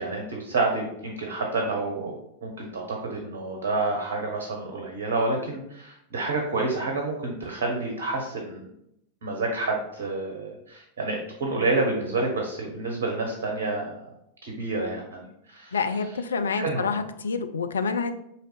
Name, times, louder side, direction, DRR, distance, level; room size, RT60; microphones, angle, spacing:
voice 1, 0.0-8.7 9.2-14.0 14.4-15.8 16.6-16.9, right 2 dB, 55° right, 1 dB, 0.7 m, -29 dB
voice 2, 15.7-18.1, left 5 dB, 70° left, 8 dB, 0.3 m, -27 dB
4.5 x 2.9 x 3.0 m, 0.78 s
figure-of-eight pair, 90°, 0 cm